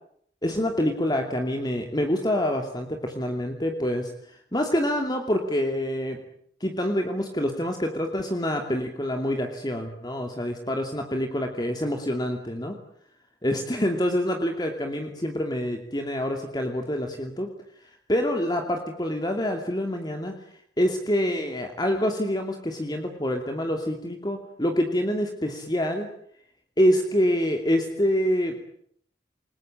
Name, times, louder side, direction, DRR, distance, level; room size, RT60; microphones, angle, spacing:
voice 1, 0.4-6.2 6.6-12.7 13.4-17.5 18.1-20.3 20.8-26.1 26.8-28.6, equal, 25° left, 4 dB, 2.7 m, -26 dB
29.0 x 20.5 x 8.9 m, 0.67 s
head